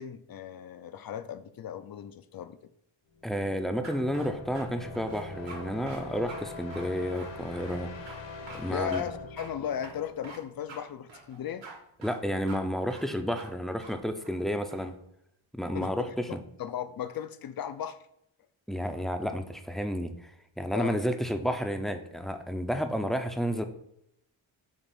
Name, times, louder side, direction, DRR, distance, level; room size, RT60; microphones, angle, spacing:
voice 1, 0.0-2.6 8.7-11.7 14.8-14.9 15.7-18.0 20.7-21.0, left 9 dB, 50° left, 0.5 m, -36 dB
sound 1, 3.1-10.8, left 3 dB, 65° left, 1.2 m, -44 dB
voice 2, 3.2-8.3 8.5-9.0 12.0-15.0 15.5-16.0 16.3-16.4 18.7-20.3 20.6-23.6, equal, ahead, 0.5 m, -31 dB
sound 2, 3.8-4.6 4.9-5.6 5.9-6.0 6.3-6.4 6.7-7.8 8.1-8.2 8.5-8.6 8.9-9.0 9.4-9.5 9.8-10.4 10.7-10.8 11.1-11.8 12.0-12.2 12.5-12.6 12.9-13.1 13.4-13.5 13.8-13.9 14.2-14.9, right 3 dB, 70° right, 1.6 m, -46 dB
7.2 x 2.5 x 5.3 m
cardioid pair, 95°, 47 cm